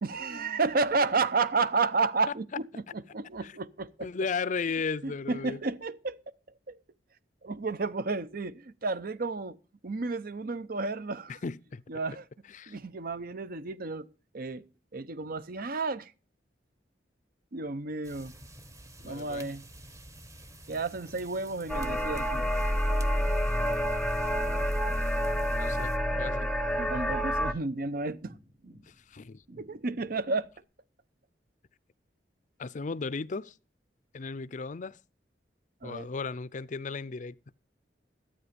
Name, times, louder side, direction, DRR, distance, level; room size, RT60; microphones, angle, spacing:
voice 1, 0.0-4.1 5.0-6.2 6.7-6.8 7.4-9.6 9.8-11.4 11.9-12.3 12.7-14.1 14.3-14.6 14.9-16.1 17.5-18.3 19.0-19.6 20.7-22.5 26.8-28.3 29.6-30.5 35.8-36.1, right 3 dB, 55° right, 0.8 m, -31 dB
voice 2, 4.0-5.6 11.3-11.8 12.5-12.8 19.0-19.5 25.5-25.9 26.2-26.5 28.9-29.4 32.6-33.5 34.1-35.0 35.8-37.4, left 4 dB, 45° left, 0.5 m, -35 dB
sound 1, 18.0-26.0, right 1 dB, 20° right, 1.1 m, -50 dB
sound 2, 21.7-27.5, equal, 5° left, 0.8 m, -28 dB
sound 3, 21.9-30.6, right 1 dB, 75° right, 3.3 m, -55 dB
12.5 x 8.7 x 5.2 m
head